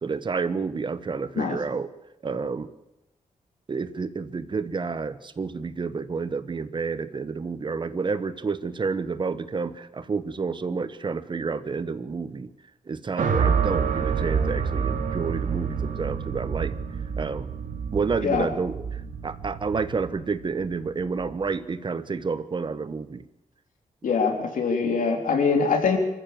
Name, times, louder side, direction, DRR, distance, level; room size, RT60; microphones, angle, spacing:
voice 1, 0.0-1.9 2.2-2.7 3.7-12.5 12.9-16.7 17.2-17.5 17.9-18.8 19.2-23.2, right 4 dB, 35° right, 13 dB, 1.1 m, -29 dB
sound 1, 13.2-21.4, right 6 dB, 80° right, 2.6 m, -28 dB
voice 2, 24.0-26.0, left 5 dB, 85° left, 3 dB, 3.8 m, -23 dB
25.0 x 14.5 x 7.8 m, 0.92 s
wide cardioid pair, 140°, 13 cm